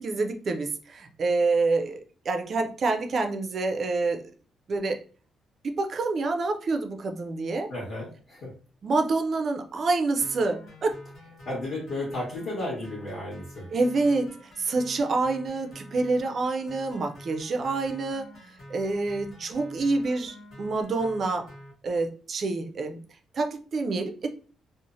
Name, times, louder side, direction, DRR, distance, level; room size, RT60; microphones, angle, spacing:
voice 1, 0.0-4.2 4.7-5.0 5.6-7.7 8.8-11.0 13.7-14.3 14.6-18.3 18.7-21.5 21.8-23.0 23.3-24.3, right 3 dB, 40° right, 5 dB, 0.4 m, -27 dB
voice 2, 7.7-8.5 11.4-13.6, left 1 dB, 40° left, -7 dB, 1.3 m, -33 dB
sound 1, 10.2-21.7, equal, 60° left, 1.4 m, -47 dB
3.1 x 2.0 x 2.5 m, 0.39 s
cardioid pair, 150°, 0 cm